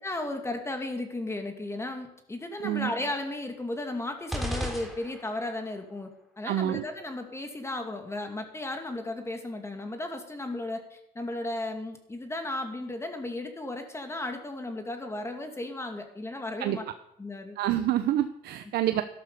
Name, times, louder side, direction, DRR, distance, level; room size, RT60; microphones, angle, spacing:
voice 1, 0.0-6.1 6.4-16.8 17.2-17.6, left 2 dB, 15° left, 5 dB, 2.4 m, -35 dB
voice 2, 2.6-2.9 6.4-6.8 16.6-16.8 17.6-19.0, right 12 dB, 70° right, 10 dB, 0.9 m, -27 dB
sound 1, 4.3-5.6, equal, ahead, 3.6 m, -34 dB
13.0 x 12.0 x 6.8 m, 0.79 s
cardioid pair, 110°, 17 cm